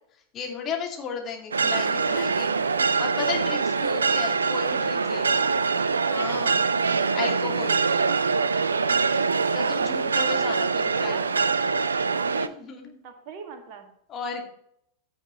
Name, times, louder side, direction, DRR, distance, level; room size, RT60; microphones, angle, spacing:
voice 1, 0.3-2.5 2.8-5.4 6.1-6.6 7.1-7.8 9.5-11.5 12.2-13.0 14.1-14.5, left 6 dB, 30° left, 1 dB, 2.5 m, -34 dB
sound 1, 1.5-12.5, right 4 dB, 75° right, 0.5 m, -24 dB
voice 2, 5.3-5.7 10.8-11.3 13.0-13.9 14.4-14.5, right 6 dB, 40° right, 5 dB, 1.9 m, -42 dB
15.0 x 7.1 x 3.1 m, 0.71 s
figure-of-eight pair, 90°, 0 cm